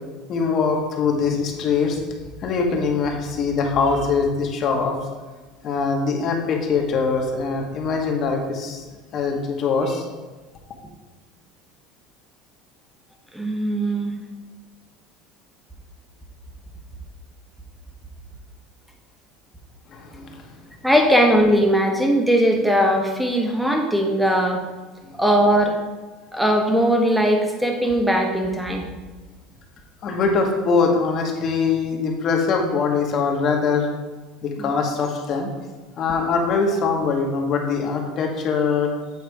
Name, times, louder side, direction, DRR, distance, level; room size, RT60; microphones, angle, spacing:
voice 1, 0.3-2.0 2.4-4.9 5.6-8.8 9.1-10.1 19.9-20.5 25.1-25.2 30.0-33.9 34.4-35.5 36.0-38.9, left 5 dB, 40° left, 2 dB, 1.2 m, -22 dB
voice 2, 13.3-14.2 20.8-24.6 25.1-25.8 26.3-28.8 34.6-34.7, equal, 5° right, 2 dB, 0.9 m, -19 dB
8.3 x 4.0 x 4.8 m, 1.3 s
cardioid pair, 150°, 0 cm